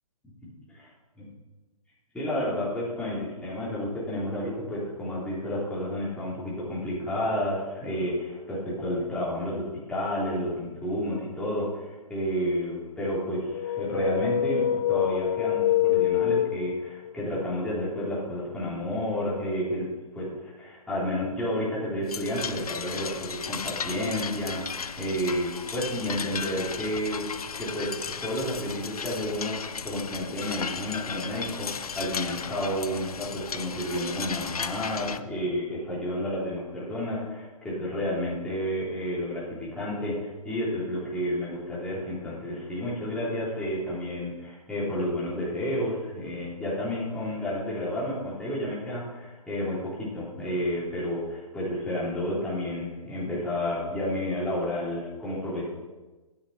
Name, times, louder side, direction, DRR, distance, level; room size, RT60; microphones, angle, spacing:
voice 1, 2.1-19.9 20.1-27.2 27.6-55.7, equal, 5° left, -8 dB, 3.4 m, -31 dB
sound 1, 13.5-17.1, left 11 dB, 40° left, 0.5 m, -25 dB
sound 2, 22.1-35.2, left 6 dB, 80° left, 0.6 m, -35 dB
12.5 x 10.0 x 4.3 m, 1.2 s
figure-of-eight pair, 135°, 19 cm